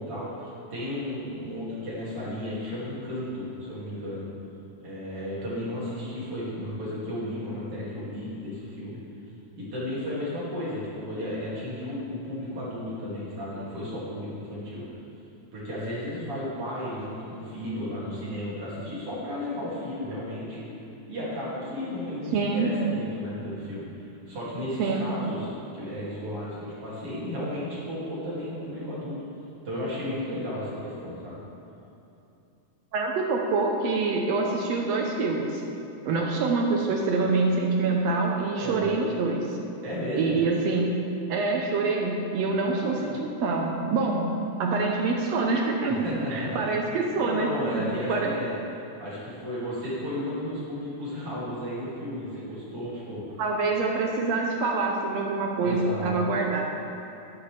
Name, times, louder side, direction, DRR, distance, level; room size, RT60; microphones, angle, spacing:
voice 1, 0.0-4.3 4.8-9.0 9.6-14.8 15.5-20.7 21.1-29.1 29.6-31.4 38.6-38.9 39.8-40.4 42.6-43.2 45.9-46.7 47.2-48.5 49.0-53.4 55.6-56.2, left 1 dB, 45° right, -8 dB, 3.2 m, -34 dB
voice 2, 22.3-22.7 24.8-25.1 32.9-35.6 36.0-39.6 40.1-40.8 41.3-46.0 46.3-48.3 53.4-56.6, right 3 dB, 75° right, 1 dB, 1.6 m, -26 dB
12.5 x 9.7 x 3.3 m, 2.7 s
omnidirectional pair, 3.7 m